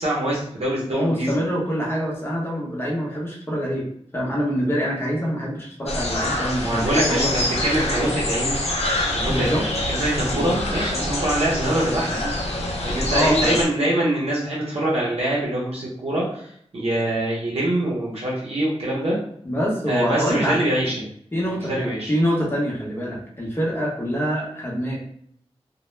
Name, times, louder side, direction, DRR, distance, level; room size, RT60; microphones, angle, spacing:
voice 1, 0.0-1.3 6.6-8.6 9.1-9.5 9.9-12.3 12.8-19.2 19.9-21.0 21.5-22.1, right 1 dB, 70° right, -5 dB, 0.7 m, -24 dB
voice 2, 0.9-3.9 4.1-7.3 9.3-9.7 10.3-10.5 13.1-13.6 19.4-20.6 21.3-25.0, equal, 20° left, -4 dB, 0.8 m, -25 dB
sound 1, 5.9-13.6, left 1 dB, 75° left, 0.5 m, -26 dB
2.1 x 2.0 x 3.1 m, 0.66 s
wide cardioid pair, 95°, 11 cm